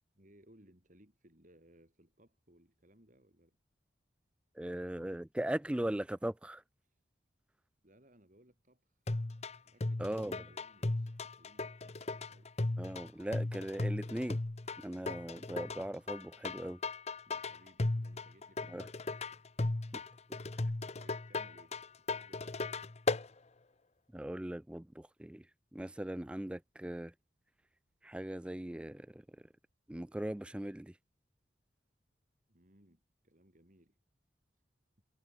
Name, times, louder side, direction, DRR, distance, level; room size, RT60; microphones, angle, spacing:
voice 1, 0.1-3.6 6.8-7.0 7.8-9.0 9.6-12.6 17.2-19.0 19.7-20.1 20.9-22.7 32.5-34.0, right 1 dB, 45° right, 6.0 m, -64 dB
voice 2, 4.6-6.6 10.0-10.4 12.8-14.4 14.8-16.8 18.7-18.8 24.1-25.4 25.7-27.1 28.0-29.2 29.9-30.9, right 1 dB, 5° right, 0.3 m, -39 dB
sound 1, 9.1-23.3, left 2 dB, 35° left, 0.8 m, -36 dB
head